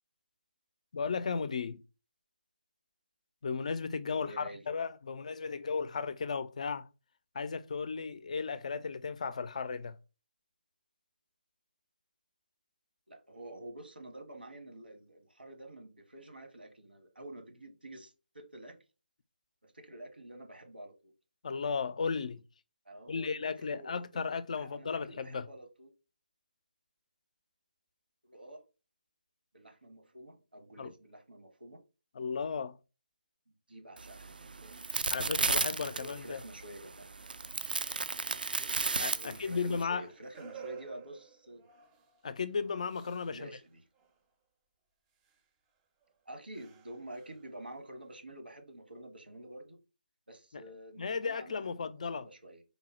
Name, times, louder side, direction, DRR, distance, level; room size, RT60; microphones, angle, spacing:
voice 1, 0.9-1.8 3.4-6.9 7.3-10.0 21.4-22.4 23.1-25.5 30.8-30.9 32.1-32.8 35.1-36.4 39.0-40.1 42.2-43.5 50.5-50.6 51.0-52.3, left 5 dB, 45° left, 0.4 m, -35 dB
voice 2, 4.1-4.6 13.1-18.8 19.6-21.1 22.8-24.2 24.5-25.9 28.2-28.6 29.5-31.8 33.7-35.4 35.9-37.1 39.1-41.6 43.3-43.8 46.3-49.8 50.3-51.6 52.1-52.6, right 1 dB, 85° right, 1.4 m, -49 dB
sound 1, 34.0-39.8, right 4 dB, 70° right, 0.4 m, -34 dB
sound 2, 39.5-43.7 43.9-44.2 45.2-45.4 46.0-46.1 46.5-47.8, right 8 dB, 15° right, 0.5 m, -54 dB
3.9 x 2.0 x 4.2 m
figure-of-eight pair, 150°, 5 cm